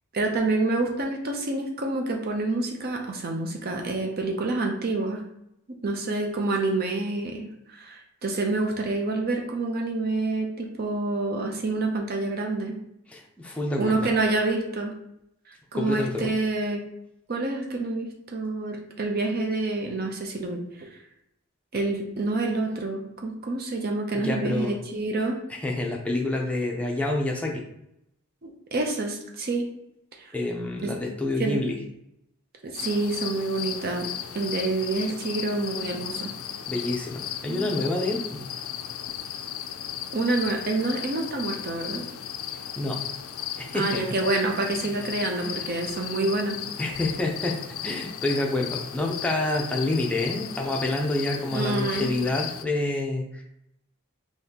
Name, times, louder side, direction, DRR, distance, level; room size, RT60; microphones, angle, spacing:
voice 1, 0.1-5.2 5.7-12.8 13.8-14.9 15.7-16.8 17.3-20.9 21.7-25.4 28.4-29.7 30.8-30.9 31.4-31.6 32.6-34.1 34.3-36.3 37.5-37.7 40.1-42.0 43.7-46.6 51.5-52.1, right 2 dB, 45° right, 2 dB, 0.6 m, -27 dB
voice 2, 13.1-14.1 15.7-16.3 24.1-24.8 25.5-27.6 30.3-31.8 36.7-38.4 42.8-43.0 43.6-44.0 44.8-45.1 46.8-53.4, left 2 dB, 5° left, -1 dB, 0.5 m, -28 dB
sound 1, 32.7-52.6, left 10 dB, 70° left, 0.4 m, -36 dB
4.0 x 3.0 x 2.8 m, 0.79 s
head